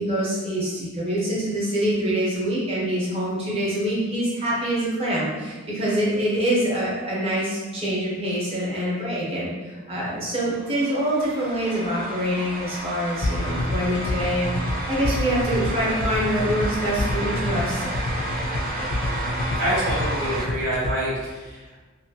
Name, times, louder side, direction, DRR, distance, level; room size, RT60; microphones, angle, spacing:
voice 1, 0.0-17.8, right 1 dB, 30° right, -7 dB, 0.7 m, -25 dB
sound 1, 10.4-20.5, right 1 dB, 45° right, 0.3 m, -32 dB
sound 2, 13.2-20.9, left 2 dB, 35° left, 0.3 m, -27 dB
voice 2, 19.6-21.7, right 1 dB, 90° right, -13 dB, 1.2 m, -27 dB
2.8 x 2.2 x 2.7 m, 1.3 s
head